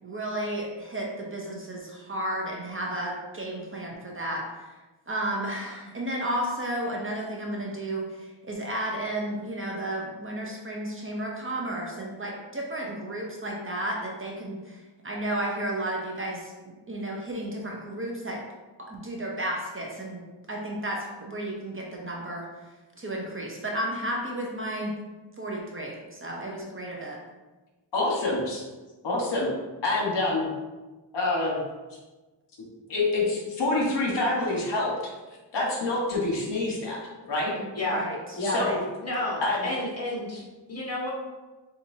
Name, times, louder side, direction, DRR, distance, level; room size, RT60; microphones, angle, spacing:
voice 1, 0.0-4.8 5.1-14.8 15.0-18.4 18.8-22.5 23.0-24.9 25.4-27.2 37.6-38.8, right 1 dB, 25° right, -2 dB, 0.7 m, -33 dB
voice 2, 27.9-28.6 29.0-29.5 29.8-30.5 31.1-31.6 32.9-35.1 35.5-37.0 37.3-37.5 38.4-38.8 39.4-39.8, left 2 dB, 65° left, -3 dB, 1.4 m, -26 dB
voice 3, 39.0-40.4 40.7-41.1, left 1 dB, 35° left, -4 dB, 1.4 m, -30 dB
7.0 x 2.6 x 2.7 m, 1.2 s
wide cardioid pair, 115°, 46 cm